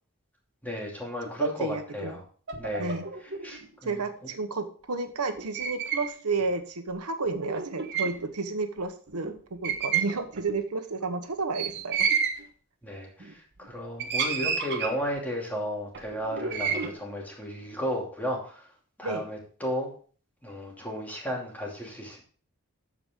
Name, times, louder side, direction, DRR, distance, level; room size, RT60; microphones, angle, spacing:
voice 1, 0.6-2.2 2.6-3.0 3.4-4.0 12.8-18.7 19.0-19.9 20.4-22.2, equal, 10° left, -2 dB, 2.7 m, -34 dB
voice 2, 1.4-2.2 2.8-3.0 3.8-9.3 9.6-12.0 19.0-19.2, right 3 dB, 85° right, 7 dB, 1.1 m, -31 dB
sound 1, 2.5-3.7 5.4-6.1 6.4-6.5 7.2-8.3 8.8-8.9 9.1-9.4 9.6-10.6 11.5-12.4 13.2-13.7 14.0-15.2 15.9-16.9, right 6 dB, 50° right, 1.2 m, -30 dB
14.0 x 4.9 x 3.7 m, 0.43 s
head